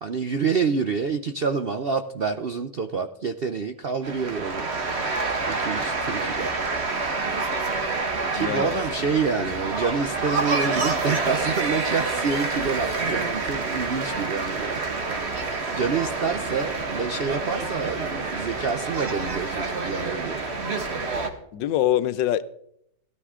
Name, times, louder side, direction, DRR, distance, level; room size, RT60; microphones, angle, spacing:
voice 1, 0.0-4.7 5.5-6.5 8.3-20.5, right 5 dB, 65° right, 0.5 m, -28 dB
sound 1, 4.0-21.3, right 3 dB, 40° right, 1.6 m, -28 dB
voice 2, 8.3-8.8 9.4-9.5 21.5-22.5, left 12 dB, 85° left, 1.4 m, -24 dB
17.0 x 13.0 x 3.7 m
omnidirectional pair, 1.9 m